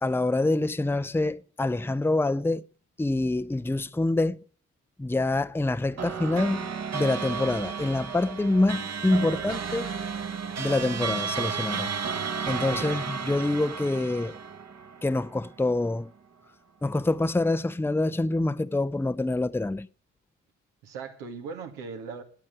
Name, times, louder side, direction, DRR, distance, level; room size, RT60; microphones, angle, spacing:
voice 1, 0.0-2.6 3.0-4.4 5.0-9.9 10.6-11.9 12.5-14.4 15.0-16.1 16.8-19.9, left 2 dB, 5° left, 0.8 m, -26 dB
sound 1, 6.0-15.6, right 6 dB, 45° right, 1.6 m, -33 dB
voice 2, 9.1-9.5 12.4-12.8 20.8-22.2, right 5 dB, 80° right, 2.2 m, -40 dB
13.0 x 11.0 x 9.1 m
hypercardioid pair, 40°, 36 cm